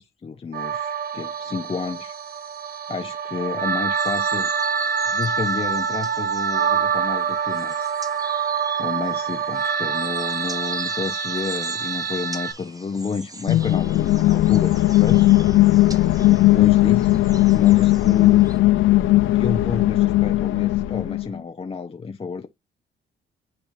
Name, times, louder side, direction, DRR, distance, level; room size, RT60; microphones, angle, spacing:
voice 1, 0.0-2.1 2.9-4.5 5.1-8.0 8.8-15.3 16.2-17.1 17.4-18.6 19.2-22.5, left 5 dB, 30° left, 0.7 m, -31 dB
sound 1, 0.5-12.5, right 6 dB, 50° right, 1.1 m, -26 dB
sound 2, 4.0-18.6, right 2 dB, 20° right, 1.0 m, -41 dB
sound 3, 13.5-21.3, left 16 dB, 80° left, 0.5 m, -17 dB
9.8 x 3.6 x 2.6 m
cardioid pair, 90°, 20 cm